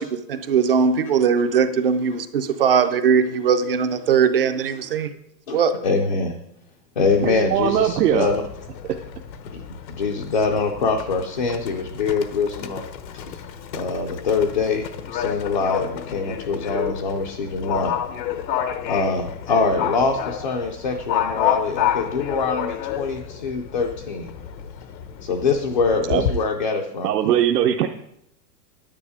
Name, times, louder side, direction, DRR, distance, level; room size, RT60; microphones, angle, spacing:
voice 1, 0.0-5.1 5.5-5.7, right 6 dB, 35° right, 10 dB, 0.5 m, -20 dB
voice 2, 5.5-6.4 7.0-8.4 9.4-9.6 9.9-12.8 13.1-13.4 13.7-17.9 18.8-24.3 25.2-27.1, left 4 dB, 30° left, 1 dB, 0.4 m, -24 dB
Livestock farm animals working animals, 7.0-26.3, left 10 dB, 85° left, 1.2 m, -30 dB
voice 3, 7.2-8.3 26.1-26.2 27.0-27.9, right 10 dB, 65° right, 4 dB, 0.9 m, -20 dB
9.9 x 9.6 x 4.8 m, 0.77 s
supercardioid pair, 180°, 50 cm